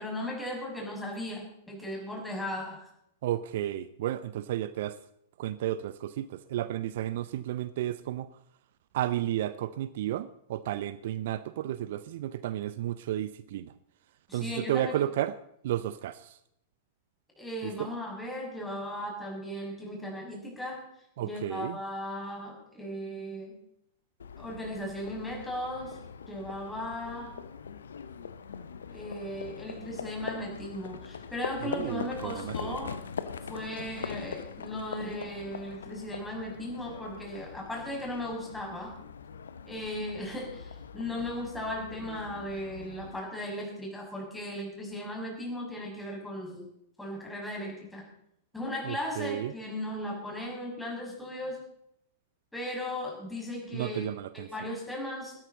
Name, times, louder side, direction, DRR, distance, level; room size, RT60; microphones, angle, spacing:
voice 1, 0.0-2.9 14.3-15.1 17.4-20.8 21.2-23.6 24.4-26.0 26.3-27.4 28.9-32.9 33.5-38.9 39.7-46.7 47.0-48.0 48.5-51.6 52.5-54.0 54.3-55.3, left 1 dB, 5° left, -2 dB, 6.3 m, -37 dB
voice 2, 3.2-5.0 5.4-8.3 8.9-13.7 14.3-15.3 15.6-16.4 17.6-17.9 21.2-21.8 31.6-32.8 48.8-49.5 53.7-54.5, right 12 dB, 55° right, 16 dB, 0.6 m, -32 dB
Livestock farm animals working animals, 24.2-43.2, left 6 dB, 70° left, 1.0 m, -42 dB
17.5 x 12.5 x 4.1 m, 0.76 s
figure-of-eight pair, 100°, 0 cm